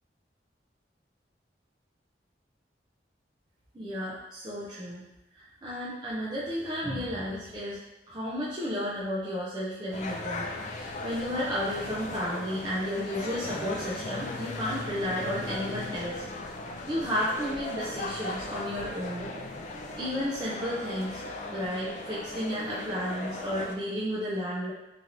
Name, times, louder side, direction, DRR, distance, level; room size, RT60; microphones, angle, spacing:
voice 1, 3.7-5.0 5.3-7.8 8.1-16.3 16.9-19.3 20.0-21.2 21.5-24.7, equal, 25° right, -8 dB, 0.5 m, -32 dB
sound 1, 9.9-23.7, left 2 dB, 40° left, 0.3 m, -37 dB
3.1 x 2.8 x 2.5 m, 0.95 s
head